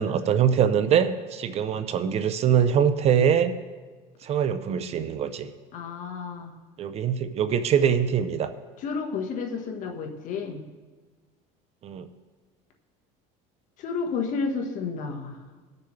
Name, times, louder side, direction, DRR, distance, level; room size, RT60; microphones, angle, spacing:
voice 1, 0.0-3.5 4.2-5.5 6.8-8.5 11.8-12.1, right 8 dB, 40° right, 11 dB, 0.6 m, -23 dB
voice 2, 5.7-6.5 8.8-10.6 13.8-15.4, left 5 dB, 50° left, 3 dB, 1.4 m, -31 dB
19.0 x 6.8 x 3.3 m, 1.4 s
cardioid pair, 125°, 16 cm